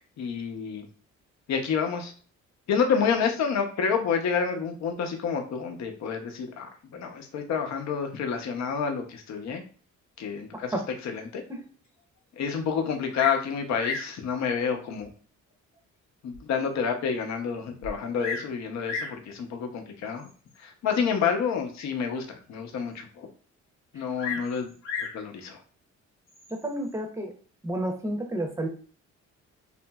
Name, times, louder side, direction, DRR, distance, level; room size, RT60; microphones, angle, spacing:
voice 1, 0.2-0.9 1.5-2.1 2.7-9.6 10.2-10.7 11.0-11.4 12.4-15.1 16.2-20.2 20.6-23.3 23.9-24.7 25.1-25.6, left 6 dB, 65° left, 5 dB, 0.7 m, -29 dB
Bird vocalization bird call bird song, 13.1-13.5 13.8-14.2 15.0-15.1 15.7-15.8 16.3-16.4 16.6-16.7 17.8-18.5 18.8-19.2 20.2-20.5 24.2-25.2 26.3-26.7, left 5 dB, 85° left, 0.9 m, -34 dB
voice 2, 26.6-27.3 27.6-28.7, right 1 dB, 10° right, 2 dB, 0.6 m, -30 dB
2.8 x 2.5 x 2.3 m, 0.42 s
cardioid pair, 90°, 30 cm